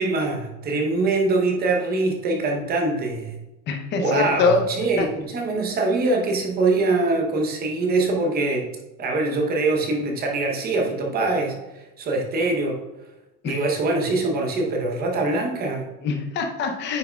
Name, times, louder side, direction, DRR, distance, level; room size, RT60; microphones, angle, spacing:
voice 1, 0.0-3.4 3.9-8.7 9.0-12.8 13.4-15.9, right 3 dB, 20° right, 1 dB, 0.7 m, -23 dB
voice 2, 3.7-4.6 5.0-5.1 13.4-13.5 16.0-17.0, left 4 dB, 25° left, 3 dB, 0.6 m, -23 dB
9.5 x 4.7 x 2.2 m, 1.0 s
supercardioid pair, 150°, 47 cm